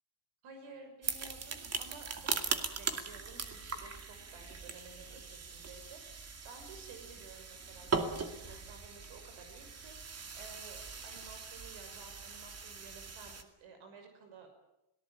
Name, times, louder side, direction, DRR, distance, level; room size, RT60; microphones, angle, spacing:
voice 1, 0.4-14.5, right 4 dB, 70° right, 6 dB, 6.1 m, -54 dB
sound 1, 1.0-13.4, right 4 dB, 30° right, 2.5 m, -40 dB
26.5 x 18.5 x 9.1 m, 0.85 s
cardioid pair, 135°, 48 cm